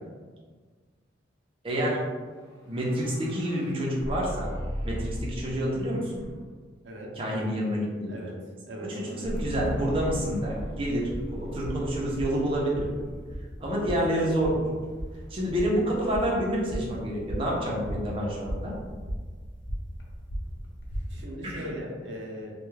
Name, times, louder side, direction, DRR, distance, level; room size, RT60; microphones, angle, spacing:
voice 1, 1.6-2.1 2.7-4.5 4.8-6.1 7.2-8.2 8.8-12.9 13.6-14.6 15.3-18.7 21.4-21.7, equal, 30° right, -4 dB, 0.5 m, -28 dB
sound 1, 2.3-5.7 6.1-6.7 9.2-13.3, equal, 20° left, 0.8 m, -37 dB
voice 2, 8.7-9.4 21.1-22.5, equal, 80° right, -1 dB, 0.5 m, -38 dB
sound 2, 9.3-21.2, equal, 75° left, 0.5 m, -38 dB
2.2 x 2.2 x 3.1 m, 1.5 s
head